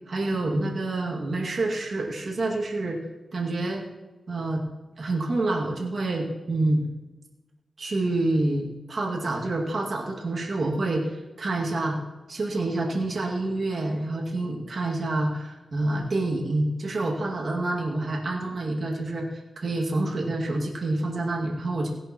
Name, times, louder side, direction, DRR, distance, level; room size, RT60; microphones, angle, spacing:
voice 1, 0.1-3.0 3.3-3.8 4.3-4.6 5.0-6.9 7.8-12.0 12.3-19.3 19.6-21.9, right 2 dB, 60° right, -2 dB, 2.1 m, -27 dB
17.5 x 10.5 x 3.0 m, 1.1 s
cardioid pair, 75°, 0 cm